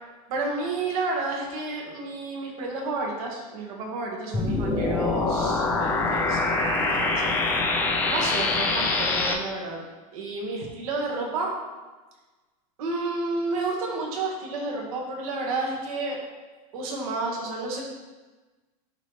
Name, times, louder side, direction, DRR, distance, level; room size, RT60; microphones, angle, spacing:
voice 1, 0.3-9.8 10.1-11.5 12.8-16.2 16.7-17.8, right 3 dB, 65° right, -1 dB, 1.8 m, -31 dB
sound 1, 4.3-9.3, left 3 dB, 10° left, 0.5 m, -24 dB
11.0 x 4.0 x 3.3 m, 1.2 s
supercardioid pair, 160°, 20 cm